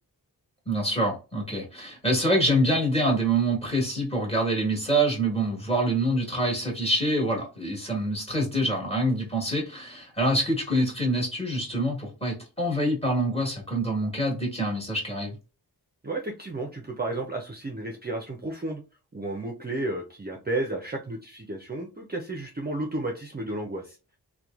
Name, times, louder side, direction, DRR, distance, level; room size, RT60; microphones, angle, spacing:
voice 1, 0.7-15.3, right 1 dB, 15° left, -1 dB, 1.3 m, -26 dB
voice 2, 16.0-18.8 19.1-24.0, right 2 dB, 25° right, 1 dB, 0.5 m, -32 dB
2.9 x 2.2 x 2.3 m, 0.32 s
wide cardioid pair, 50°, 40 cm